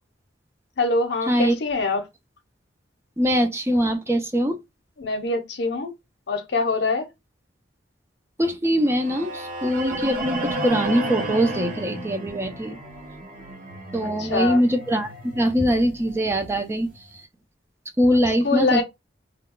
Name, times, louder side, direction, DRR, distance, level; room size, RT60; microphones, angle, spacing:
voice 1, 0.8-2.1 5.0-5.9 6.3-7.1 14.0-14.6 18.4-18.8, left 3 dB, 65° left, 0.7 m, -24 dB
voice 2, 3.2-4.6 8.4-12.8 13.9-16.9 18.0-18.8, equal, 15° right, 0.4 m, -22 dB
sound 1, 8.9-17.0, right 1 dB, 50° right, 0.8 m, -33 dB
2.3 x 2.2 x 3.6 m
head